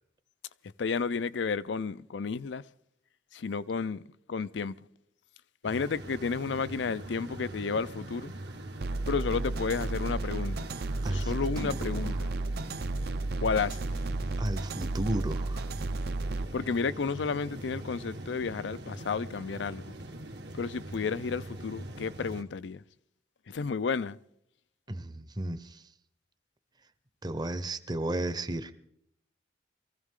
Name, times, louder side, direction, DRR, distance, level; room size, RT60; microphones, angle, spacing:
voice 1, 0.8-2.6 3.3-4.0 4.3-4.7 5.6-8.3 9.1-10.7 11.1-12.3 13.4-13.9 16.5-19.9 20.5-22.8 23.5-24.2, left 5 dB, 85° left, 0.5 m, -32 dB
sound 1, 5.6-22.4, right 1 dB, 75° right, 1.6 m, -42 dB
sound 2, 8.8-16.4, right 2 dB, 60° right, 0.6 m, -33 dB
voice 2, 11.0-12.0 14.4-15.7 24.9-25.8 27.2-28.7, right 1 dB, 25° right, 0.7 m, -34 dB
23.5 x 15.0 x 3.7 m
head